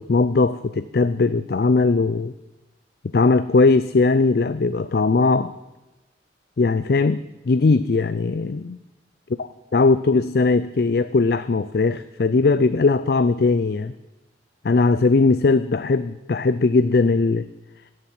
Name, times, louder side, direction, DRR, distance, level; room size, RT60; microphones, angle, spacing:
voice 1, 0.0-2.3 3.1-5.5 6.6-8.8 9.7-13.9 14.6-17.5, left 3 dB, 55° left, 13 dB, 0.4 m, -19 dB
16.5 x 8.0 x 9.2 m, 1.1 s
head